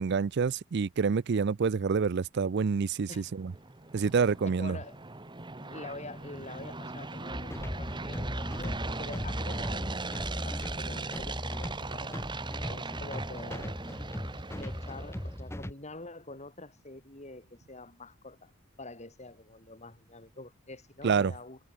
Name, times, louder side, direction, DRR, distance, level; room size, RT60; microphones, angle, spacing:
voice 1, 0.0-3.5 3.9-4.8 21.0-21.3, right 5 dB, 55° right, 0.4 m, -27 dB
sound 1, 3.1-15.4, right 3 dB, 20° right, 1.5 m, -39 dB
voice 2, 4.4-5.0 5.6-12.2 12.7-13.8 14.5-18.5 18.8-21.6, left 2 dB, 30° left, 5.7 m, -46 dB
sound 2, 7.3-15.7, equal, 10° left, 1.2 m, -38 dB
head